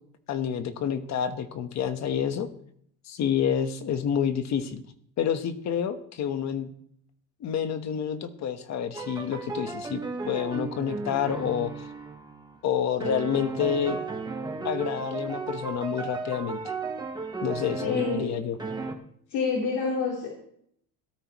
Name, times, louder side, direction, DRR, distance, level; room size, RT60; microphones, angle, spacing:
voice 1, 0.3-2.5 3.1-4.8 5.2-6.7 7.4-11.9 12.6-14.0 14.6-16.7 17.4-18.6, left 8 dB, 45° left, 9 dB, 1.2 m, -28 dB
sound 1, 8.9-12.6 13.0-18.3 18.6-18.9, right 3 dB, 10° right, 1.2 m, -34 dB
voice 2, 17.8-18.3 19.3-20.4, left 5 dB, 75° left, -3 dB, 3.7 m, -27 dB
17.5 x 13.0 x 3.1 m, 0.68 s
cardioid pair, 155°, 38 cm